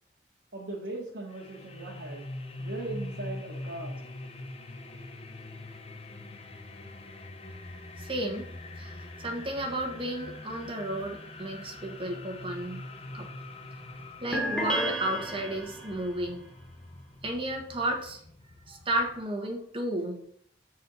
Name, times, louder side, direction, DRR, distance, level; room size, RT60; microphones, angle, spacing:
voice 1, 0.5-2.3 2.6-4.0, right 2 dB, 85° right, -3 dB, 1.1 m, -39 dB
sound 1, 1.3-19.2, left 1 dB, 35° left, 0.6 m, -43 dB
voice 2, 8.0-8.9 9.2-12.8 13.1-13.3 14.2-16.4 17.2-18.2 18.7-20.2, right 1 dB, 30° right, 1 dB, 1.1 m, -33 dB
sound 2, 14.3-16.1, right 1 dB, 5° left, 0.9 m, -32 dB
6.4 x 4.2 x 4.0 m, 0.68 s
head